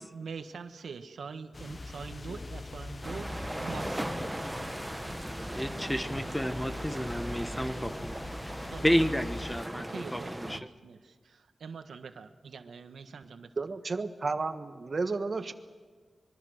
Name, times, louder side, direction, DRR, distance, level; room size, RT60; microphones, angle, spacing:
voice 1, 0.1-4.1 8.6-8.9 9.7-13.6, right 5 dB, 90° right, 8 dB, 1.4 m, -44 dB
sound 1, 1.5-9.6, left 2 dB, 30° left, 0.6 m, -42 dB
Sea recorded from Seashore (far), 3.0-10.6, right 1 dB, 10° right, 0.9 m, -38 dB
voice 2, 5.2-8.4 8.8-10.6, equal, 5° left, 9 dB, 1.2 m, -31 dB
voice 3, 13.6-15.5, right 3 dB, 45° right, 8 dB, 1.5 m, -32 dB
24.5 x 23.0 x 6.5 m, 1.5 s
wide cardioid pair, 115°, 0 cm